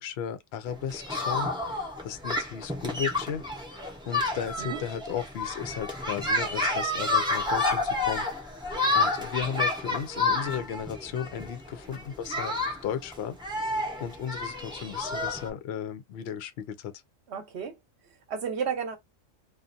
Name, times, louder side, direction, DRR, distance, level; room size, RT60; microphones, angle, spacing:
voice 1, 0.0-3.4 4.0-8.3 8.9-12.5 12.8-13.4 14.0-16.9, left 8 dB, 65° left, 0.7 m, -35 dB
sound 1, 0.7-15.5, left 2 dB, 5° right, 0.7 m, -30 dB
voice 2, 17.3-17.8 18.1-19.0, right 6 dB, 60° right, 1.1 m, -33 dB
2.5 x 2.4 x 2.5 m
omnidirectional pair, 1.3 m